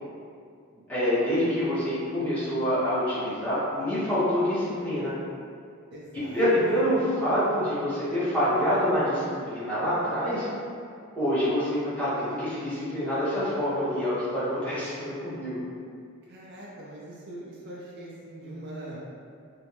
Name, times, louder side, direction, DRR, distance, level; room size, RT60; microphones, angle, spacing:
voice 1, 0.9-5.1 6.1-10.5 11.1-15.6, equal, 5° left, -13 dB, 1.0 m, -26 dB
voice 2, 5.9-6.4 6.8-7.2 16.3-19.0, right 1 dB, 50° right, -5 dB, 0.4 m, -42 dB
2.7 x 2.1 x 2.9 m, 2.3 s
head